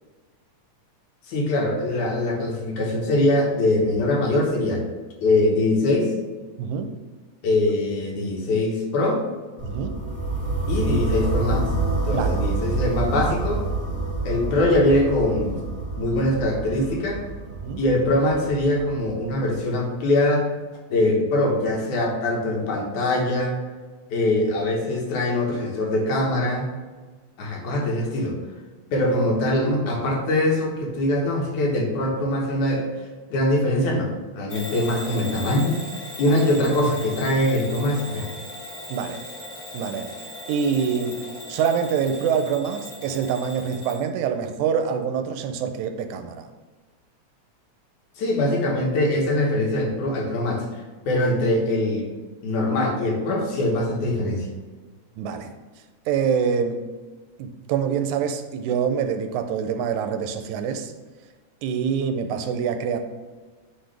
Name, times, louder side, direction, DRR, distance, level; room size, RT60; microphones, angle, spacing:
voice 1, 1.3-4.9 5.2-6.1 7.4-9.2 10.7-11.7 12.0-13.7 14.2-15.6 16.0-17.2 17.7-20.5 20.9-23.6 24.1-26.7 27.4-28.4 28.9-32.9 33.3-35.8 36.2-38.3 48.2-50.6 51.1-52.1 52.4-54.5, left 1 dB, 80° left, -1 dB, 2.7 m, -22 dB
voice 2, 6.6-7.0 9.6-10.0 12.1-12.4 17.6-17.9 36.2-36.4 38.9-39.2 39.7-40.1 40.5-41.2 41.5-46.5 55.2-55.5 56.1-56.8 57.4-60.9 61.6-63.0, right 7 dB, 85° right, 7 dB, 2.0 m, -25 dB
sound 1, 9.6-19.5, right 2 dB, 25° left, 0.9 m, -27 dB
Bell / Alarm, 34.5-44.0, left 1 dB, 60° left, 2.9 m, -38 dB
9.3 x 3.8 x 3.3 m, 1.3 s
omnidirectional pair, 3.4 m